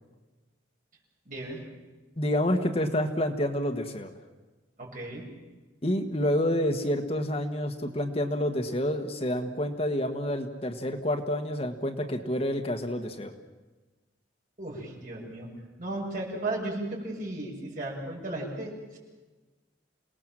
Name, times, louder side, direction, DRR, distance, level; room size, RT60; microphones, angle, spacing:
voice 1, 1.3-1.6 4.8-5.2 14.6-15.5 15.8-19.0, right 2 dB, 45° right, -2 dB, 7.1 m, -35 dB
voice 2, 2.2-4.1 5.8-13.3, left 1 dB, 30° left, 5 dB, 1.4 m, -28 dB
29.0 x 19.0 x 7.6 m, 1.2 s
head